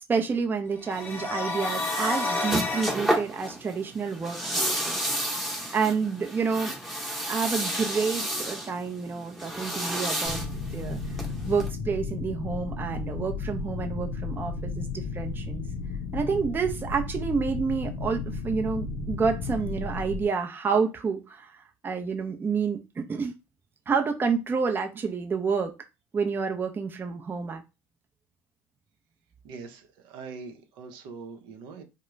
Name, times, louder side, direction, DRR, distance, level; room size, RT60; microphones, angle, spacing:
voice 1, 0.1-5.0 5.7-6.7 7.3-10.5 10.7-11.0 11.5-15.6 16.1-21.5 21.8-23.3 23.9-25.7 26.1-27.6, right 5 dB, 25° right, 0.6 m, -29 dB
sound 1, 0.8-3.0, left 2 dB, 25° left, 0.8 m, -30 dB
sound 2, 0.9-11.7, equal, ahead, 1.0 m, -32 dB
sound 3, 10.2-20.3, left 4 dB, 60° left, 0.6 m, -34 dB
voice 2, 29.4-31.8, right 5 dB, 65° right, 0.7 m, -42 dB
2.3 x 2.1 x 3.1 m
hypercardioid pair, 75°, 8 cm